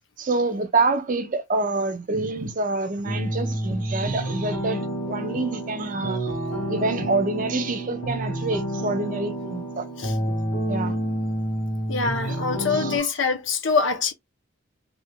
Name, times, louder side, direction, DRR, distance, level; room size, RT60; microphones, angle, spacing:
voice 1, 0.2-6.3 6.7-9.8 10.2-10.3 10.7-11.0 12.3-12.4 12.7-13.1, right 3 dB, 40° right, 0.6 m, -27 dB
sound 1, 3.0-13.0, right 1 dB, 85° left, 1.3 m, -29 dB
voice 2, 11.9-14.1, left 5 dB, 60° left, 0.7 m, -24 dB
3.2 x 2.8 x 2.2 m
head